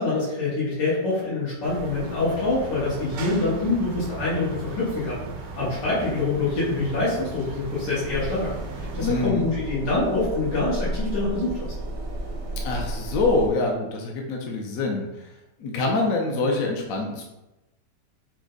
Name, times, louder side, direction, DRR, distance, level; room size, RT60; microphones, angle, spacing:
voice 1, 0.0-5.2 5.6-11.7, left 2 dB, 85° left, -8 dB, 2.0 m, -25 dB
sound 1, 1.6-9.3, right 3 dB, 85° right, 1.4 m, -37 dB
sound 2, 8.1-13.5, right 1 dB, 50° right, 0.7 m, -32 dB
voice 2, 9.0-9.4 12.6-15.3 15.6-17.2, left 3 dB, 65° left, 1 dB, 1.0 m, -25 dB
6.0 x 2.2 x 3.9 m, 0.98 s
omnidirectional pair, 1.9 m